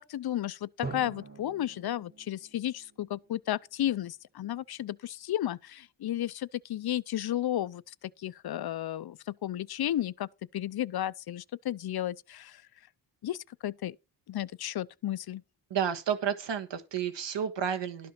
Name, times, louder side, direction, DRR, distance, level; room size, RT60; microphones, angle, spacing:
voice 1, 0.0-12.6 13.2-14.0 14.3-15.4, left 12 dB, 55° left, 0.6 m, -33 dB
Drum, 0.8-3.7, right 3 dB, 20° right, 4.0 m, -44 dB
voice 2, 15.7-18.1, right 8 dB, 70° right, 1.6 m, -31 dB
12.0 x 5.5 x 5.8 m
wide cardioid pair, 115°, 45 cm